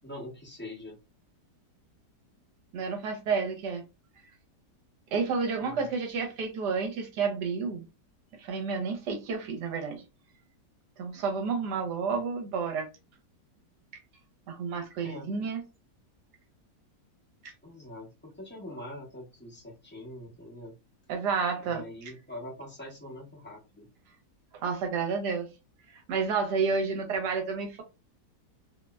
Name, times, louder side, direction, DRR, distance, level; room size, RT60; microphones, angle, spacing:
voice 1, 0.0-1.0 5.6-5.9 15.0-15.3 17.6-20.8 21.6-23.9, left 1 dB, 15° left, 0.3 m, -43 dB
voice 2, 2.7-3.8 5.1-7.8 8.4-10.0 11.0-12.9 14.5-15.6 21.1-21.8 24.6-25.5 26.1-27.8, right 5 dB, 75° right, 1.2 m, -30 dB
2.9 x 2.0 x 2.3 m
omnidirectional pair, 1.8 m